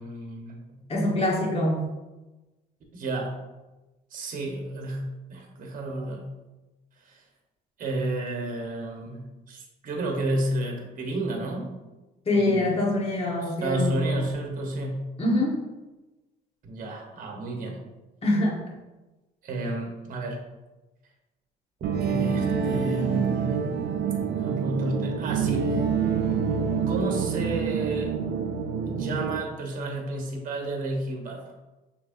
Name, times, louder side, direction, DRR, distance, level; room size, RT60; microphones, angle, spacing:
voice 1, 0.0-0.9 2.9-3.3 4.1-6.3 7.1-7.2 7.8-11.8 12.3-12.8 13.4-15.0 16.6-17.8 19.4-20.5 22.0-23.6 24.4-25.7 26.9-28.1 28.9-31.4, right 2 dB, 50° right, 1 dB, 1.0 m, -31 dB
voice 2, 0.9-1.8 12.3-14.0 15.2-15.6 18.2-18.6, left 1 dB, 35° left, -2 dB, 1.3 m, -24 dB
sound 1, 21.8-29.4, right 6 dB, 70° right, 0.5 m, -27 dB
6.1 x 3.2 x 2.6 m, 1.1 s
cardioid pair, 110°, 17 cm